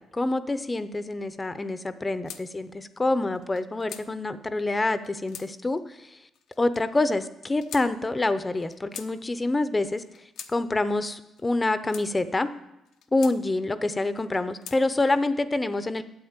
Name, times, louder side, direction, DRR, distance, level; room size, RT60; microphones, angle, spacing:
voice 1, 0.1-6.2 6.6-10.0 10.5-12.5 13.1-16.0, left 2 dB, 20° left, 12 dB, 0.7 m, -26 dB
sound 1, 2.2-2.4 3.3-4.1 4.9-5.5 6.3-6.8 7.6-7.9 8.6-9.1 10.0-10.5 11.4-12.1 12.8-13.4 14.2-14.8, left 9 dB, 85° left, 0.8 m, -43 dB
9.5 x 7.7 x 8.9 m, 0.91 s
cardioid pair, 90°, 0 cm